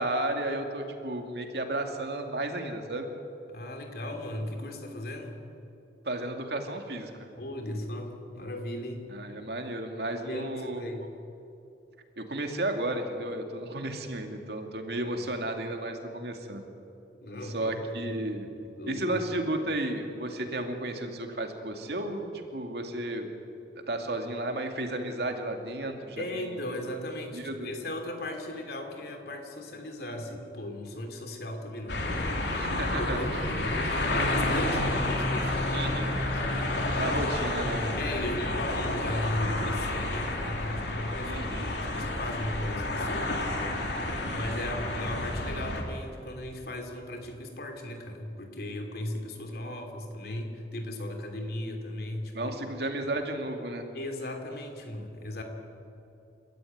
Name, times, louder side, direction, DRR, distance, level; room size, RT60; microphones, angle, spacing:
voice 1, 0.0-3.1 6.0-7.3 9.1-10.8 12.2-16.6 17.4-18.5 18.9-23.3 23.9-26.6 27.3-27.7 32.6-33.5 35.7-36.1 36.9-37.8 41.2-41.7 44.3-44.5 52.3-53.9, right 1 dB, 65° right, 4 dB, 2.5 m, -33 dB
voice 2, 3.5-5.4 7.4-9.1 10.3-11.1 15.1-15.2 17.2-18.1 18.6-19.2 26.2-36.0 36.3-37.1 37.8-52.5 53.9-55.4, left 1 dB, 60° left, 4 dB, 3.2 m, -37 dB
sound 1, 31.9-45.8, left 1 dB, 75° left, 3.2 m, -30 dB
30.0 x 13.5 x 9.5 m, 2.8 s
head